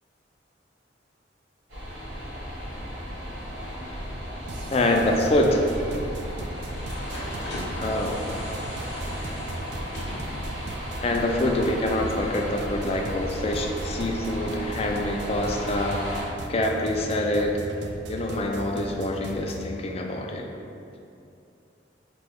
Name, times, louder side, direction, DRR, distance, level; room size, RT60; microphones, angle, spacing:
sound 1, 1.7-16.2, equal, 85° right, 1.5 m, -35 dB
sound 2, 2.5-13.2, left 1 dB, 70° left, 0.6 m, -42 dB
sound 3, 4.5-19.7, right 2 dB, 65° right, 0.4 m, -39 dB
voice 1, 4.7-5.6 7.8-8.2 11.0-16.1 16.5-17.6 18.1-20.5, left 1 dB, 35° left, 2 dB, 0.3 m, -25 dB
3.1 x 2.7 x 4.4 m, 2.6 s
head